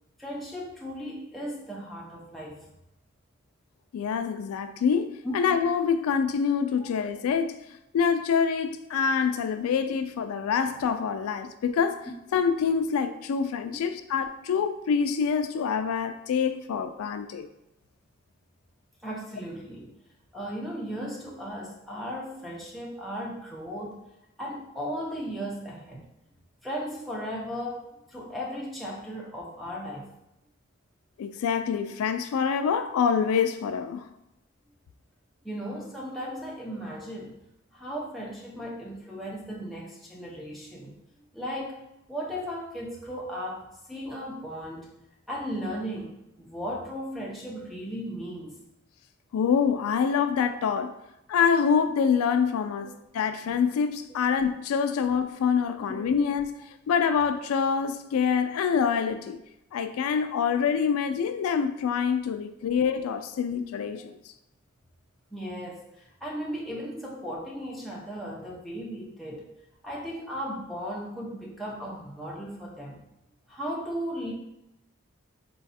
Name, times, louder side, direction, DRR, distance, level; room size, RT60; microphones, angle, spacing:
voice 1, 0.2-2.6 5.2-5.3 6.8-6.9 19.0-19.9 20.3-24.0 24.4-26.0 26.6-30.1 35.4-37.3 37.7-41.0 41.3-41.8 42.1-44.9 45.3-48.6 55.9-56.1 58.7-58.9 65.3-69.4 69.8-73.0 73.5-74.3, equal, ahead, -5 dB, 0.6 m, -36 dB
voice 2, 3.9-7.6 7.9-17.5 31.2-34.1 49.3-50.9 51.3-56.6 56.9-59.4 59.7-64.1, left 6 dB, 90° left, 10 dB, 0.3 m, -26 dB
4.0 x 2.3 x 4.1 m, 0.87 s
head